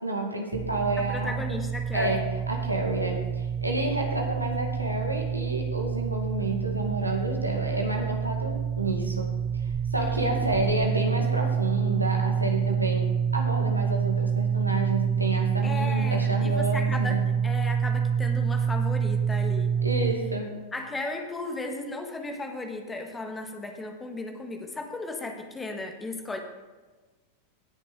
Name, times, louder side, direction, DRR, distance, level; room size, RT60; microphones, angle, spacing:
voice 1, 0.0-1.3 1.9-9.3 9.9-17.3 19.8-20.5, right 2 dB, 85° right, 1 dB, 2.0 m, -30 dB
sound 1, 0.5-20.2, right 7 dB, 25° right, 0.7 m, -27 dB
voice 2, 1.0-2.2 10.0-10.5 15.6-19.7 20.7-26.4, left 2 dB, 15° left, 4 dB, 1.6 m, -35 dB
18.0 x 6.5 x 3.9 m, 1.2 s
figure-of-eight pair, 90°, 0 cm